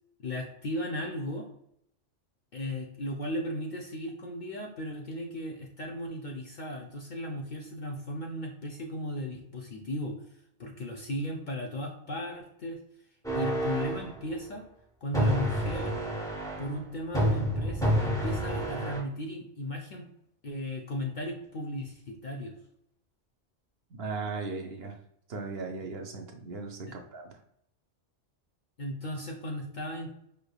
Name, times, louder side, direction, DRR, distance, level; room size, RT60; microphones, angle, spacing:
voice 1, 0.2-1.5 2.5-10.2 10.6-12.8 13.3-14.7 15.0-16.0 16.6-20.1 20.4-22.5 26.9-27.0 28.8-30.2, equal, 50° left, 0 dB, 0.6 m, -36 dB
sound 1, 13.2-14.1 15.1-16.7 17.1-19.0, equal, 5° left, 0.5 m, -29 dB
voice 2, 23.9-25.0 25.3-27.3, right 4 dB, 65° right, 4 dB, 0.8 m, -37 dB
5.0 x 3.3 x 2.3 m, 0.74 s
omnidirectional pair, 1.2 m